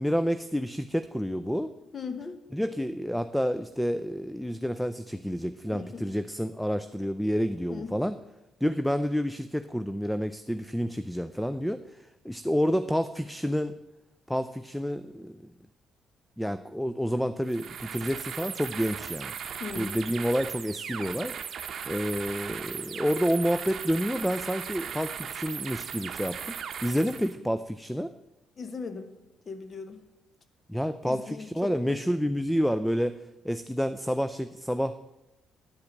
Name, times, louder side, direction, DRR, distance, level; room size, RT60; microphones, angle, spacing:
voice 1, 0.0-1.7 2.5-8.2 8.6-13.8 14.3-15.4 16.4-19.3 19.8-21.3 21.9-26.6 26.8-28.1 30.7-33.2 33.4-35.0, equal, ahead, 11 dB, 0.4 m, -29 dB
voice 2, 1.9-2.4 5.7-6.1 7.7-8.1 19.6-20.0 28.6-29.2 29.5-30.0 31.0-32.0, left 4 dB, 45° left, 9 dB, 1.0 m, -38 dB
sound 1, 17.4-27.4, right 7 dB, 60° right, 0.8 m, -37 dB
10.5 x 5.0 x 7.1 m, 0.95 s
cardioid pair, 90°, 0 cm